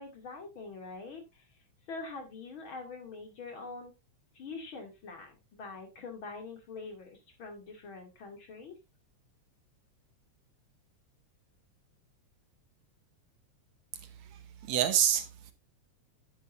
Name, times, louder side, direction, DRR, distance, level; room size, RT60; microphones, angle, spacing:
voice 1, 0.0-1.5 1.9-3.9 4.3-8.7, left 3 dB, 45° left, 3.1 m, -44 dB
voice 2, 13.9-15.5, right 10 dB, 70° right, 2.2 m, -29 dB
11.0 x 10.0 x 2.6 m
omnidirectional pair, 3.3 m